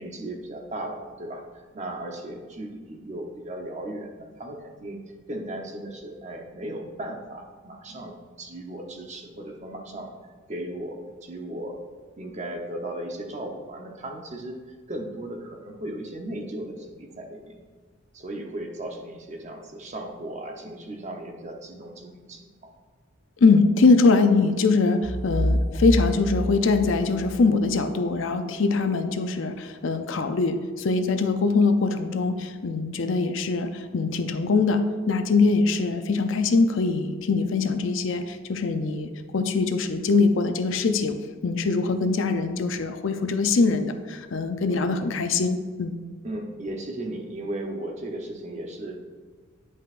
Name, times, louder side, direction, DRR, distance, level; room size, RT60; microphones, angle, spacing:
voice 1, 0.0-5.0 5.3-11.8 12.2-17.6 18.1-22.7 44.7-44.8 46.2-49.0, right 1 dB, 35° right, 2 dB, 0.8 m, -36 dB
voice 2, 23.4-41.2 41.4-46.0, left 4 dB, 65° left, 8 dB, 0.5 m, -22 dB
sound 1, 25.0-27.9, equal, ahead, 0.3 m, -27 dB
9.5 x 5.4 x 2.5 m, 1.5 s
head